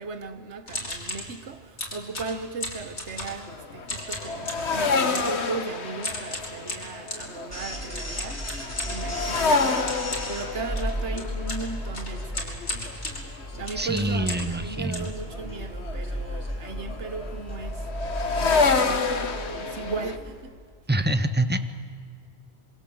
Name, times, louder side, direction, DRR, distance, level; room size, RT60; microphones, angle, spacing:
voice 1, 0.0-12.9 13.5-17.9 18.3-20.6, right 4 dB, 80° right, 1.5 m, -37 dB
sound 1, 0.7-1.3 1.8-3.5 3.8-4.7 5.1-5.4 6.0-7.3 7.9-14.6 14.9-15.8 16.2-16.3 16.5-16.8 17.1-17.3 17.9-18.0 18.2-18.5, left 1 dB, 90° left, 4.6 m, -36 dB
sound 2, 3.1-14.5 14.8-20.2, left 4 dB, 70° left, 1.8 m, -29 dB
sound 3, 7.5-20.4, equal, 15° left, 5.2 m, -35 dB
voice 2, 13.7-15.1 20.9-21.6, right 1 dB, 10° right, 1.4 m, -25 dB
27.0 x 25.0 x 7.9 m
omnidirectional pair, 1.2 m